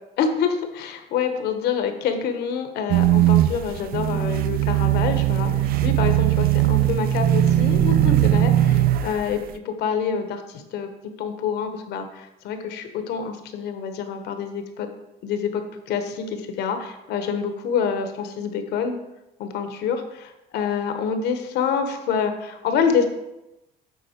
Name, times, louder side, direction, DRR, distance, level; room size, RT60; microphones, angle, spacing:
voice 1, 0.2-9.4 9.6-10.9 11.2-14.9 15.2-15.6 15.9-19.0 19.4-23.1, left 6 dB, 80° left, 7 dB, 1.0 m, -26 dB
sound 1, 2.9-9.4, right 13 dB, 60° right, 0.4 m, -19 dB
8.4 x 4.1 x 4.4 m, 0.95 s
cardioid pair, 110°, 17 cm